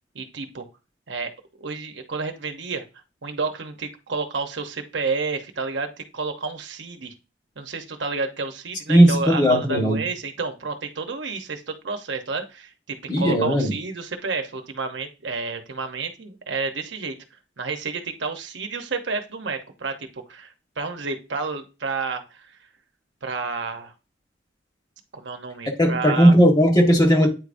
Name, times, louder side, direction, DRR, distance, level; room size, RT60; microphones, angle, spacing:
voice 1, 0.1-0.7 1.1-1.3 1.6-2.8 3.2-7.1 7.6-17.1 17.6-22.6 23.2-23.9 25.1-26.3, right 4 dB, 75° right, 0.9 m, -30 dB
voice 2, 8.9-10.0 13.1-13.7 25.8-27.3, equal, 20° left, 1.5 m, -17 dB
9.0 x 4.7 x 2.6 m
head